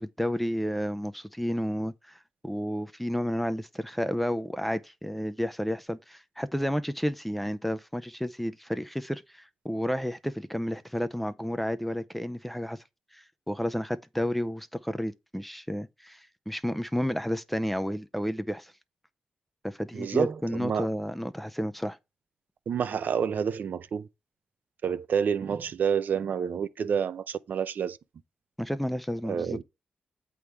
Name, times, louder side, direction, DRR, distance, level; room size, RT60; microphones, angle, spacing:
voice 1, 0.0-12.8 13.1-18.7 19.6-22.0 28.6-29.6, equal, 5° left, 0.5 m, -31 dB
voice 2, 19.9-20.9 22.7-24.1 24.8-28.0 29.2-29.6, right 7 dB, 65° right, 0.6 m, -29 dB
8.3 x 3.6 x 4.6 m
cardioid pair, 80°, 3 cm